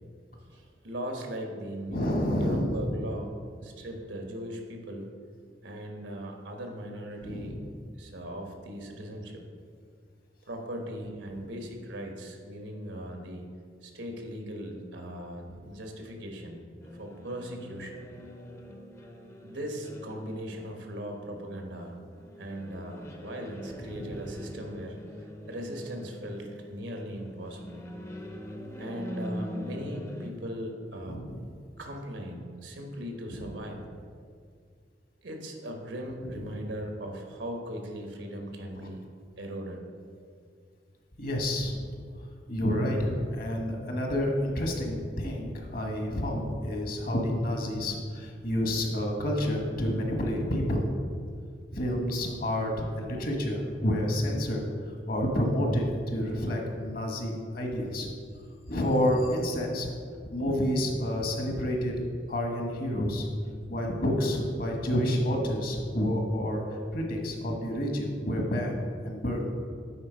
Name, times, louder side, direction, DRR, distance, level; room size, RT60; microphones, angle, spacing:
voice 1, 0.5-2.1 2.3-3.3 3.6-5.1 5.6-7.6 8.0-9.4 10.4-13.5 13.8-16.6 16.9-18.1 19.4-21.9 22.4-25.0 25.5-27.8 28.8-31.2 31.8-33.8 35.2-39.0 39.4-39.9 60.2-60.3, equal, 90° right, 2 dB, 1.2 m, -38 dB
voice 2, 1.9-2.9 7.2-7.7 23.8-24.2 31.0-31.5 33.3-33.6 36.2-36.5 41.2-41.8 42.5-50.8 51.7-54.6 55.1-58.1 58.7-59.9 60.3-63.3 63.7-66.6 66.9-69.5, equal, 55° left, 1 dB, 1.2 m, -29 dB
sound 1, 16.8-30.3, equal, 15° left, 0.5 m, -43 dB
8.7 x 4.2 x 5.0 m, 2.1 s
head